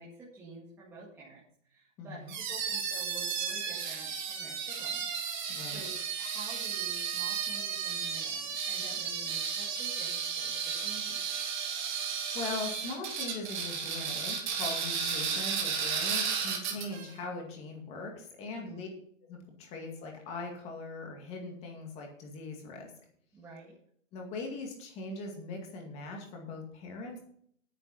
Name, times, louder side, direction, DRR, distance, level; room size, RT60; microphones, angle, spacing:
voice 1, 0.0-11.4 16.7-17.0 18.5-18.8 23.3-23.7, right 3 dB, 5° right, -7 dB, 1.9 m, -50 dB
voice 2, 2.0-2.3 5.5-5.8 11.9-18.9 19.3-22.9 24.1-27.2, left 3 dB, 15° left, 1 dB, 2.2 m, -41 dB
sound 1, 2.3-17.1, right 7 dB, 35° right, 2.5 m, -34 dB
9.6 x 9.4 x 5.6 m, 0.64 s
hypercardioid pair, 170°, 38 cm